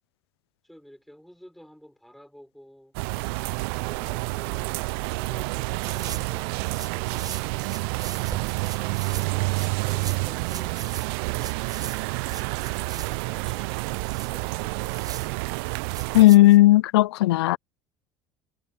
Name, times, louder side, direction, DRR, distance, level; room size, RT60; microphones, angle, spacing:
voice 1, 0.6-2.9 3.7-8.0 8.6-12.2 12.7-15.4, equal, ahead, 6.4 m, -50 dB
sound 1, 2.9-16.2, right 27 dB, 70° right, 0.6 m, -29 dB
sound 2, 5.7-16.6, right 6 dB, 30° right, 0.7 m, -41 dB
voice 2, 16.1-17.6, left 16 dB, 80° left, 0.4 m, -15 dB
hypercardioid pair, 70°, 13 cm